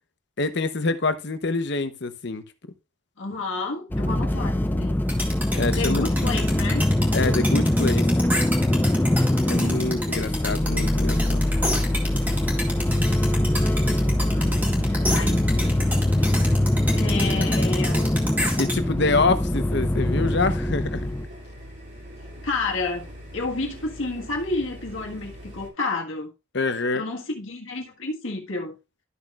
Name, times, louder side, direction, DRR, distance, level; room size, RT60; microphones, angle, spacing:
voice 1, 0.4-2.4 5.5-6.0 7.1-8.1 9.4-11.4 18.6-21.1 26.5-27.0, left 3 dB, 55° left, 0.8 m, -26 dB
voice 2, 3.2-5.0 5.7-6.9 14.3-15.8 16.9-18.1 22.4-23.1 23.3-26.3 26.9-28.8, left 3 dB, 70° left, 1.6 m, -30 dB
sound 1, 3.9-21.3, left 1 dB, 10° left, 0.3 m, -23 dB
sound 2, 5.1-18.8, equal, 10° right, 2.0 m, -29 dB
sound 3, 13.4-25.7, equal, 55° right, 2.6 m, -43 dB
12.5 x 6.2 x 2.4 m
head